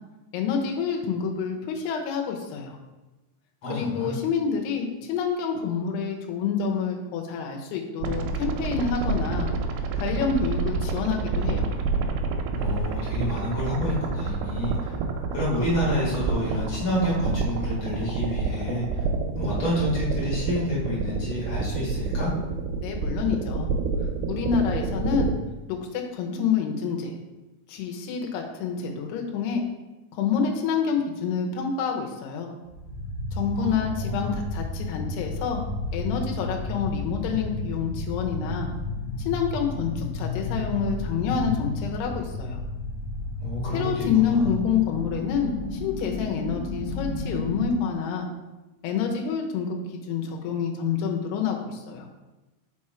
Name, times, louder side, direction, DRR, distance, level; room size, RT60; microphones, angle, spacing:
voice 1, 0.3-2.8 3.7-9.5 10.0-11.7 22.8-23.7 24.3-25.3 25.7-27.2 27.7-29.6 30.1-32.5 33.3-35.6 35.9-38.7 39.3-42.6 43.7-48.3 48.8-49.8 50.0-52.1, left 6 dB, 80° left, 2 dB, 2.9 m, -27 dB
voice 2, 3.6-4.2 12.6-14.9 15.3-19.0 19.4-22.3 33.5-34.3 43.4-44.6, left 1 dB, 40° left, -6 dB, 2.1 m, -29 dB
sound 1, 8.0-25.3, right 4 dB, 85° right, 2.6 m, -28 dB
sound 2, 32.6-47.6, left 2 dB, 55° left, 1.3 m, -32 dB
5.3 x 4.8 x 4.3 m, 1.1 s
omnidirectional pair, 4.7 m